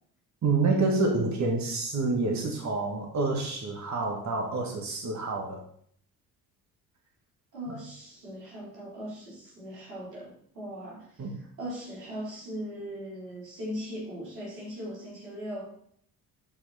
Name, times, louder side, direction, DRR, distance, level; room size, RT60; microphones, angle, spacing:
voice 1, 0.4-5.6 7.7-7.8 11.2-11.3, right 3 dB, 35° right, 2 dB, 1.7 m, -28 dB
voice 2, 7.5-15.7, equal, 80° right, -6 dB, 3.9 m, -39 dB
13.0 x 4.9 x 4.2 m, 0.64 s
figure-of-eight pair, 50°, 47 cm